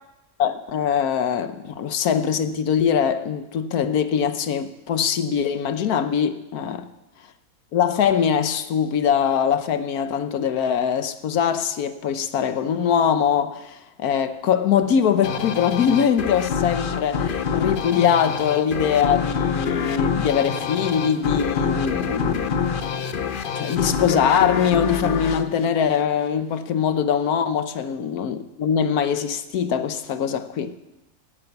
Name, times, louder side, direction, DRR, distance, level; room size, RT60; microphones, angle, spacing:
voice 1, 0.4-6.9 7.7-23.0 23.5-30.8, left 8 dB, 80° left, 1.4 m, -22 dB
sound 1, 15.2-26.5, left 6 dB, 50° left, 0.7 m, -26 dB
17.5 x 8.7 x 7.0 m
omnidirectional pair, 1.6 m